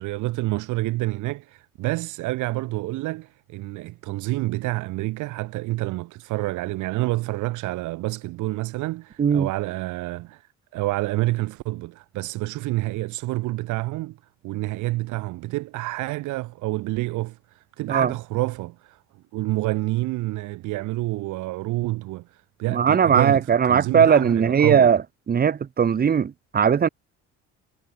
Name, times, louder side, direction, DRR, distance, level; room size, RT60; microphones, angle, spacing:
voice 1, 0.0-10.4 10.7-14.2 14.4-19.0 19.3-24.9, right 19 dB, 85° right, 1.8 m, -28 dB
voice 2, 22.7-25.0 25.3-26.9, right 7 dB, 30° right, 1.5 m, -19 dB
cardioid pair, 135°, 29 cm